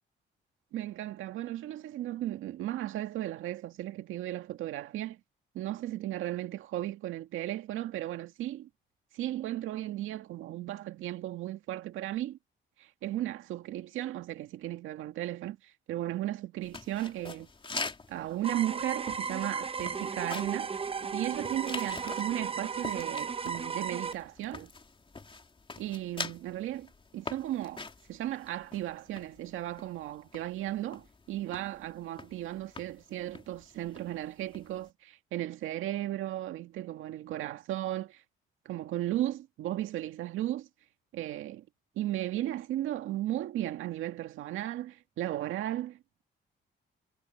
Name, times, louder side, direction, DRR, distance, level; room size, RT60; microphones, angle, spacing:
voice 1, 0.7-5.2 5.5-8.7 9.1-12.4 12.8-17.5 18.1-20.8 21.1-24.7 25.8-26.9 27.1-27.8 28.1-38.2 38.7-40.7 41.1-41.7 42.0-46.2, right 14 dB, 85° right, 2.0 m, -35 dB
sound 1, 16.6-34.9, left 3 dB, 25° left, 3.4 m, -45 dB
sound 2, 18.4-24.1, right 6 dB, 30° right, 0.8 m, -35 dB
cardioid pair, 90°, 20 cm